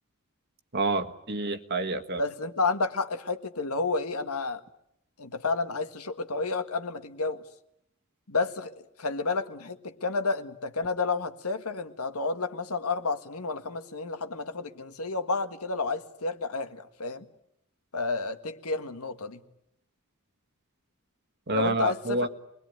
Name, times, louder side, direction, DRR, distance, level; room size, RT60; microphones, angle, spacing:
voice 1, 0.7-2.2 21.5-22.3, right 2 dB, 50° right, 7 dB, 1.6 m, -28 dB
voice 2, 2.1-4.6 5.2-7.4 8.3-17.2 17.9-19.4 21.5-22.3, left 3 dB, 80° left, 8 dB, 1.8 m, -31 dB
27.5 x 21.5 x 9.3 m, 0.80 s
head